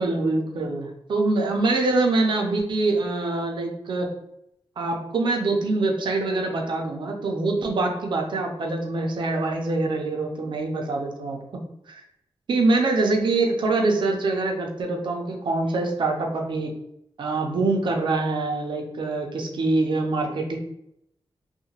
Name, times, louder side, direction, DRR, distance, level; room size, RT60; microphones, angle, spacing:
voice 1, 0.0-4.1 4.8-12.0 12.5-16.7 17.2-20.6, right 3 dB, 55° right, 1 dB, 0.5 m, -24 dB
2.8 x 2.2 x 2.8 m, 0.77 s
wide cardioid pair, 160°, 9 cm